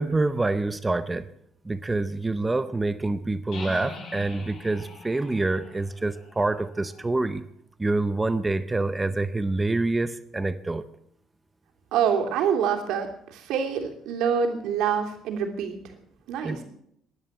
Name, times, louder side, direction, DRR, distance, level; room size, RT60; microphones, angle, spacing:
voice 1, 0.0-1.3 1.6-7.4 7.8-10.8 16.4-16.6, right 2 dB, 10° right, 13 dB, 0.6 m, -26 dB
sound 1, 3.5-7.2, left 3 dB, 55° left, 5.0 m, -43 dB
voice 2, 11.9-15.8 16.3-16.6, right 7 dB, 80° right, 3 dB, 3.0 m, -26 dB
16.5 x 11.0 x 7.2 m, 0.69 s
cardioid pair, 170°, 0 cm